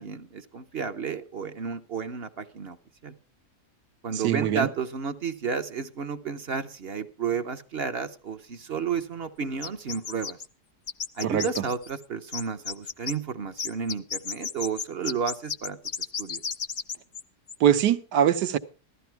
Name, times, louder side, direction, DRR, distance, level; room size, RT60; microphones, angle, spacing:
voice 1, 0.0-2.8 3.0-3.1 4.0-10.4 11.2-15.8 16.2-16.4, right 6 dB, 50° right, 0.8 m, -32 dB
voice 2, 4.2-4.7 11.2-11.5 17.6-18.6, right 10 dB, 85° right, 1.5 m, -22 dB
sound 1, 9.6-10.4 10.9-12.0 12.3-13.1 13.6-17.2 17.5-17.6, left 6 dB, 45° left, 0.7 m, -33 dB
15.0 x 13.0 x 4.5 m
omnidirectional pair, 1.7 m